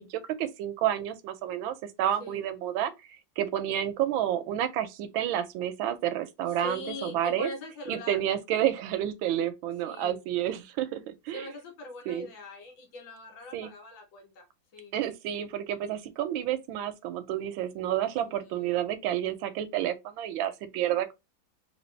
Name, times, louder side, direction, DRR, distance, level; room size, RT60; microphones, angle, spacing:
voice 1, 0.0-2.9 3.4-7.5 7.9-11.5 12.1-12.3 13.5-13.7 14.9-21.1, right 11 dB, 90° right, 1.4 m, -30 dB
voice 2, 6.6-8.2 9.8-10.2 11.3-14.5 14.7-14.9 18.3-18.8, left 1 dB, 80° left, 1.8 m, -41 dB
3.4 x 2.8 x 3.1 m
omnidirectional pair, 2.1 m